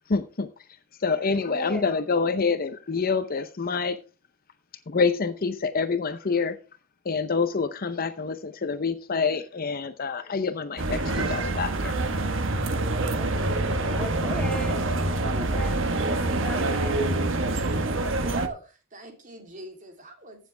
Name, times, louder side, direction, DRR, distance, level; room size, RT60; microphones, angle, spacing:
voice 1, 0.1-0.5 1.0-4.0 4.9-6.6 7.0-11.9, left 4 dB, 45° left, 0.7 m, -27 dB
voice 2, 1.3-1.9 13.1-14.9 15.4-17.2, equal, 5° left, 2.8 m, -36 dB
sound 1, 10.8-18.5, right 2 dB, 65° right, 1.3 m, -26 dB
voice 3, 18.2-20.5, right 2 dB, 40° right, 3.0 m, -40 dB
15.5 x 7.3 x 3.4 m
head